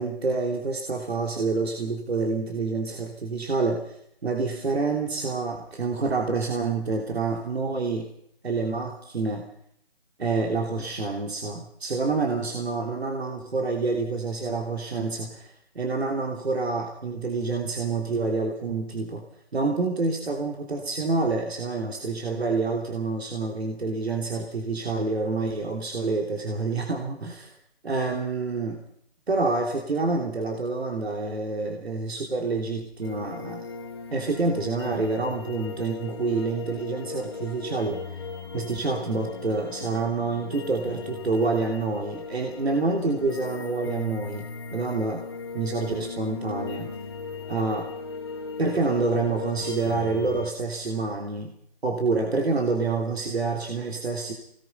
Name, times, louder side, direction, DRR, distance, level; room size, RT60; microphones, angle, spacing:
voice 1, 0.0-8.1 8.4-9.5 10.2-19.3 19.5-27.5 27.8-28.8 29.3-33.7 34.1-38.3 38.5-45.2 45.5-46.9 47.5-47.9 48.6-51.5 51.8-54.3, right 3 dB, 80° right, 2 dB, 3.3 m, -27 dB
sound 1, 33.0-50.5, left 4 dB, 25° left, 1.1 m, -37 dB
25.0 x 19.5 x 5.6 m, 0.73 s
hypercardioid pair, 175°, 31 cm